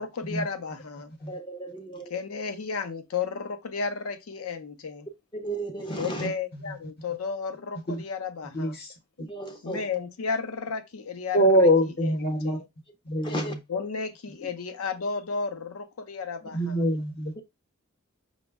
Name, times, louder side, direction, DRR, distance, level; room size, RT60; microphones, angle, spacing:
voice 1, 0.0-1.1 2.1-5.1 6.0-8.8 9.6-11.7 12.0-12.6 13.7-16.8, left 5 dB, 85° left, 0.6 m, -33 dB
voice 2, 1.3-2.1 5.3-6.3 9.3-9.9 13.2-13.6 17.4-17.5, right 1 dB, 20° left, 0.4 m, -34 dB
voice 3, 6.2-6.7 7.9-8.0 8.5-9.3 11.3-12.6 13.0-13.6 16.5-17.4, equal, 50° left, 0.8 m, -25 dB
5.1 x 2.1 x 3.4 m
head